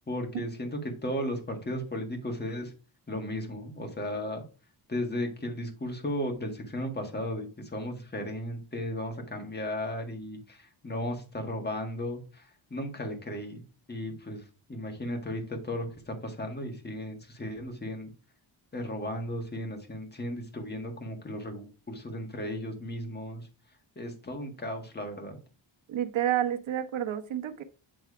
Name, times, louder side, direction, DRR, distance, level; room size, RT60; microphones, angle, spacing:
voice 1, 0.1-2.7 3.1-4.4 4.9-13.6 13.9-14.4 14.7-18.1 18.7-23.5 23.9-25.4, left 1 dB, 20° left, 1.7 m, -35 dB
voice 2, 25.9-27.6, right 11 dB, 80° right, 1.1 m, -29 dB
9.0 x 3.4 x 4.8 m
wide cardioid pair, 145°, 47 cm